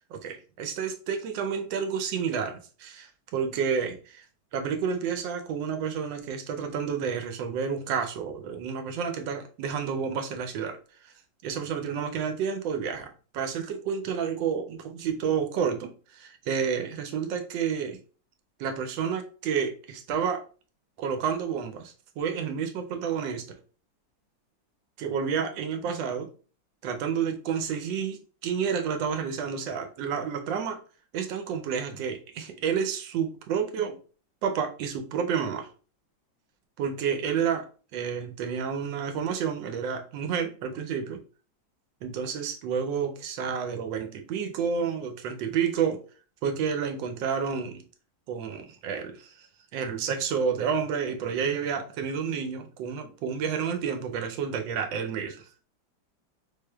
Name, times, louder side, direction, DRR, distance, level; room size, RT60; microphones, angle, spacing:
voice 1, 0.1-4.2 4.5-10.8 11.0-11.1 11.4-13.1 13.3-18.0 18.6-20.4 21.0-23.6 25.0-26.3 26.8-30.8 31.1-34.0 34.4-35.7 36.8-37.7 37.9-41.2 42.0-46.0 46.4-47.9 48.3-49.5 49.7-55.5, right 7 dB, 80° right, 1.3 m, -30 dB
3.4 x 3.2 x 2.2 m
omnidirectional pair, 2.0 m